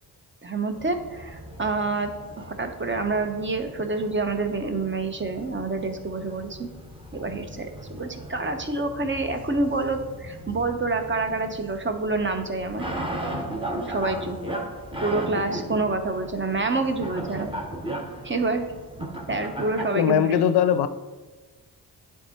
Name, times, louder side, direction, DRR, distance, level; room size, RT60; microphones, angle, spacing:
voice 1, 0.4-2.1 2.4-6.7 7.1-12.8 13.9-14.4 15.0-17.5 18.2-18.6 19.3-20.3, right 3 dB, 30° right, 6 dB, 0.8 m, -27 dB
sound 1, 0.7-19.9, right 1 dB, 10° right, 1.2 m, -37 dB
voice 2, 19.9-20.9, left 9 dB, 70° left, 12 dB, 0.5 m, -20 dB
8.9 x 3.6 x 4.4 m, 1.3 s
cardioid pair, 60°, 41 cm